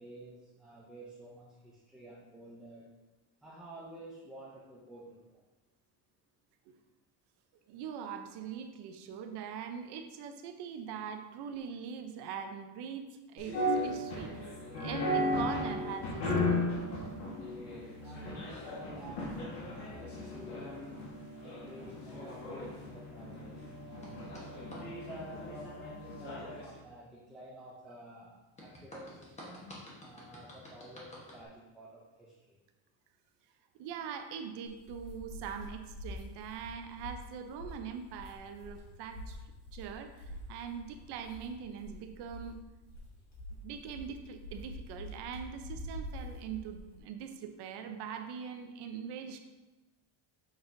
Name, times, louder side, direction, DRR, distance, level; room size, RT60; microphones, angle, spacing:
voice 1, 0.0-2.9 3.4-5.4 18.0-19.4 19.7-20.8 21.3-24.2 24.8-32.6, right 1 dB, ahead, -7 dB, 0.4 m, -51 dB
voice 2, 7.7-14.3 14.7-16.7 33.8-39.4 39.7-42.6 43.6-49.4, right 7 dB, 60° right, 7 dB, 0.7 m, -42 dB
sound 1, 13.4-26.7, left 1 dB, 60° left, 1.4 m, -36 dB
sound 2, 24.0-24.8 28.6-31.5, left 1 dB, 15° left, 1.1 m, -49 dB
sound 3, 34.6-47.0, left 1 dB, 35° left, 1.7 m, -46 dB
7.1 x 5.6 x 2.6 m, 1.1 s
cardioid pair, 175°, 47 cm